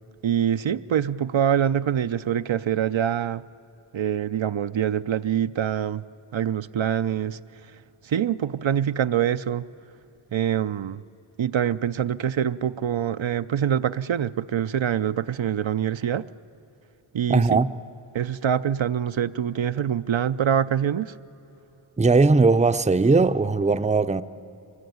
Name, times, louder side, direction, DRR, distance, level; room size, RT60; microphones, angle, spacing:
voice 1, 0.2-3.4 3.9-6.0 6.3-7.4 8.0-9.7 10.3-11.0 11.4-16.3 17.1-17.6 18.1-21.1, right 9 dB, 70° right, 0.6 m, -25 dB
voice 2, 17.3-17.7 22.0-24.2, right 3 dB, 15° right, 0.6 m, -19 dB
23.5 x 21.0 x 9.4 m
wide cardioid pair, 65°, 48 cm